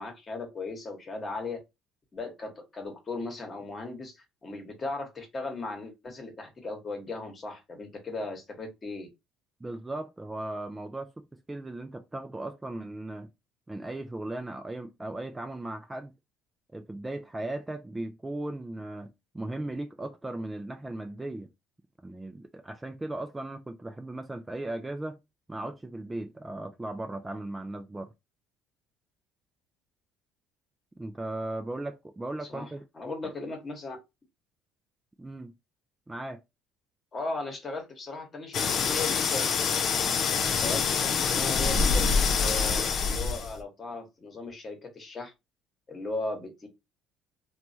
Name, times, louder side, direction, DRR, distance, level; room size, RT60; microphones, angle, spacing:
voice 1, 0.0-1.6 2.1-9.1 32.5-32.7 32.9-34.0 37.1-39.9 40.4-45.3 45.9-46.7, left 2 dB, 30° left, 1.1 m, -37 dB
voice 2, 9.6-13.3 13.7-16.1 16.7-21.5 22.0-25.2 25.5-28.1 31.0-32.8 33.2-33.3 35.2-35.5 36.1-36.4, right 2 dB, 15° right, 0.4 m, -37 dB
sound 1, 38.5-43.6, left 5 dB, 50° left, 0.5 m, -26 dB
3.0 x 2.3 x 2.6 m
supercardioid pair, 90°, 0 cm